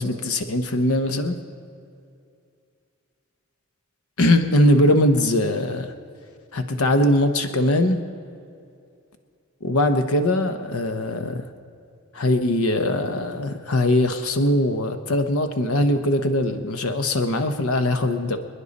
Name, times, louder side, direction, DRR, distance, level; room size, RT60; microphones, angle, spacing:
voice 1, 0.0-1.4 4.2-5.9 6.5-8.0 9.6-11.5 12.1-18.4, left 1 dB, 80° left, 7 dB, 0.9 m, -21 dB
26.0 x 10.0 x 4.1 m, 2.4 s
head